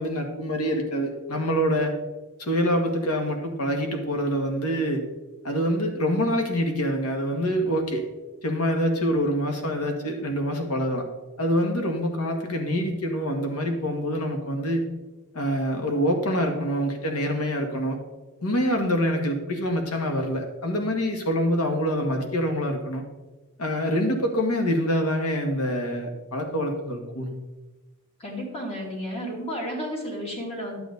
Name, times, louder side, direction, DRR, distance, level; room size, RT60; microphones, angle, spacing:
voice 1, 0.0-1.9 2.4-5.0 5.4-8.1 8.4-11.0 11.4-14.8 15.3-18.0 18.4-23.0 23.6-27.3, equal, 90° left, 3 dB, 1.7 m, -25 dB
voice 2, 28.2-30.8, equal, 25° left, -3 dB, 2.6 m, -32 dB
11.0 x 7.9 x 3.9 m, 1.1 s
head